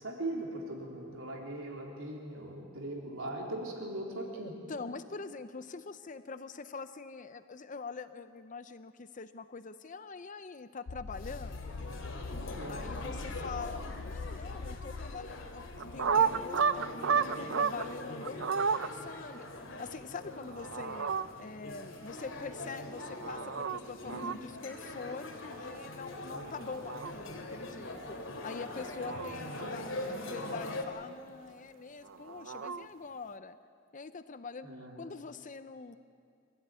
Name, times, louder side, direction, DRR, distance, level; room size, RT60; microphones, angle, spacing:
voice 1, 0.0-4.5 12.5-12.9 26.3-26.6 29.2-29.8 34.6-35.0, right 1 dB, 85° right, 0 dB, 3.8 m, -40 dB
voice 2, 4.4-11.8 12.7-19.4 19.8-21.1 21.4-28.2 28.4-33.6 33.9-34.7 35.0-36.0, left 4 dB, 40° left, 12 dB, 0.6 m, -44 dB
sound 1, 10.9-16.9, left 4 dB, 90° left, 0.6 m, -43 dB
sound 2, 11.1-30.8, left 2 dB, 70° left, 2.7 m, -43 dB
sound 3, 15.8-17.8 18.2-18.9 20.5-21.3 22.9-23.8 24.1-24.3 26.5-27.1 28.7-29.6 32.0-32.9, right 6 dB, 65° right, 0.6 m, -32 dB
25.0 x 15.0 x 9.7 m, 2.3 s
head